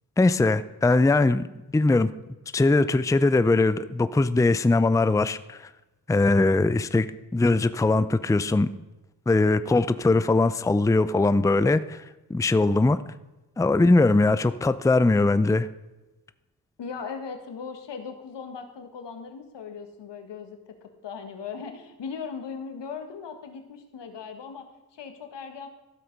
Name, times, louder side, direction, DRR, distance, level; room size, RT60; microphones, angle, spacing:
voice 1, 0.2-1.5 1.7-2.1 2.5-5.7 6.1-7.1 7.3-8.7 9.3-12.0 12.3-13.0 13.6-15.7, left 2 dB, 10° left, 14 dB, 0.5 m, -21 dB
voice 2, 16.8-25.7, left 6 dB, 80° left, 6 dB, 1.7 m, -38 dB
13.5 x 7.8 x 5.3 m, 1.0 s
cardioid pair, 65°, 42 cm